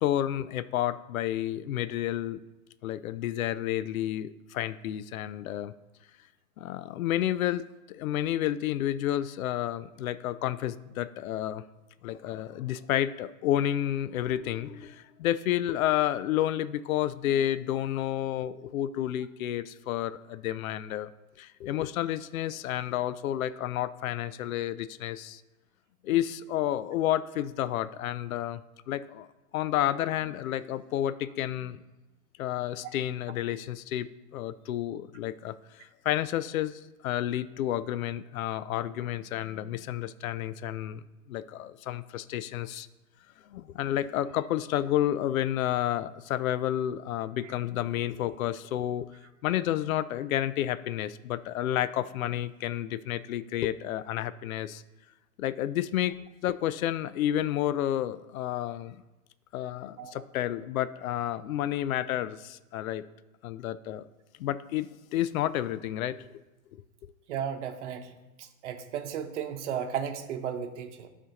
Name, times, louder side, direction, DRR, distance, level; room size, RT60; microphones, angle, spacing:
voice 1, 0.0-2.4 2.8-5.7 6.6-11.6 12.0-21.1 21.4-25.4 26.0-28.6 28.9-29.3 29.5-31.8 32.4-41.0 41.3-42.9 43.5-49.1 49.4-54.8 55.4-56.2 56.4-59.0 59.5-63.0 63.4-64.1 64.4-66.3, left 12 dB, 70° left, 15 dB, 0.5 m, -30 dB
voice 2, 67.3-68.1 68.4-71.1, right 8 dB, 55° right, 5 dB, 1.0 m, -34 dB
12.0 x 4.2 x 2.9 m, 1.1 s
hypercardioid pair, 135°, 43 cm